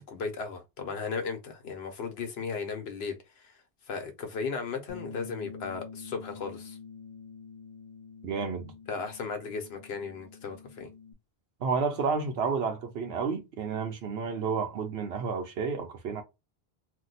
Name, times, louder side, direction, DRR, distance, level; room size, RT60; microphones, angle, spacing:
voice 1, 0.1-3.5 3.9-6.8 8.9-10.9, left 5 dB, 75° left, 1.0 m, -36 dB
Bass guitar, 4.9-11.1, left 4 dB, 40° left, 0.6 m, -47 dB
voice 2, 8.2-8.7 11.6-16.2, right 5 dB, 80° right, 0.9 m, -31 dB
2.6 x 2.2 x 3.9 m
omnidirectional pair, 1.1 m